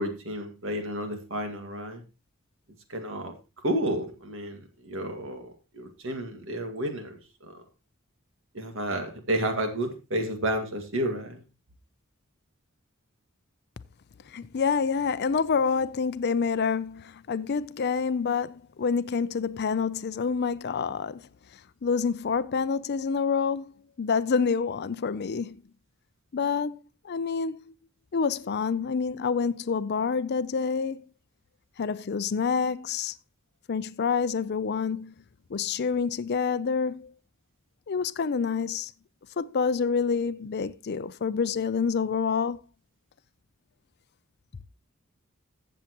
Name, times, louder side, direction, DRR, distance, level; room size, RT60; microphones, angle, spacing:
voice 1, 0.0-2.0 2.9-3.3 3.6-7.5 8.5-11.4, right 1 dB, 65° right, 1.9 m, -31 dB
voice 2, 14.3-21.3 21.8-25.6 26.3-26.8 27.0-27.7 28.1-31.0 31.8-33.1 33.7-35.1 35.5-37.1 37.9-38.9 39.4-42.6, left 5 dB, 50° left, 0.5 m, -27 dB
15.0 x 7.3 x 3.0 m
head